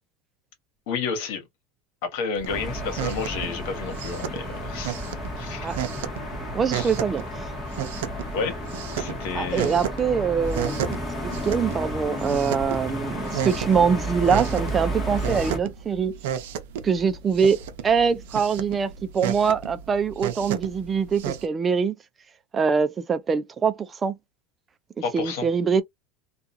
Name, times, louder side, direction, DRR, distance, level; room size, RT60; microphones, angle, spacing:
voice 1, 0.9-1.4 2.0-5.0 5.4-5.7 6.7-6.9 8.3-8.6 9.0-9.8 25.0-25.5, left 5 dB, 70° left, 1.2 m, -31 dB
sound 1, 2.3-21.4, right 10 dB, 80° right, 0.5 m, -34 dB
sound 2, 2.5-15.6, equal, 20° left, 1.0 m, -32 dB
voice 2, 6.5-7.5 9.4-16.2 16.8-22.0 22.5-24.1 25.1-25.8, right 6 dB, 20° right, 0.4 m, -24 dB
2.4 x 2.4 x 2.6 m
supercardioid pair, 145°, 0 cm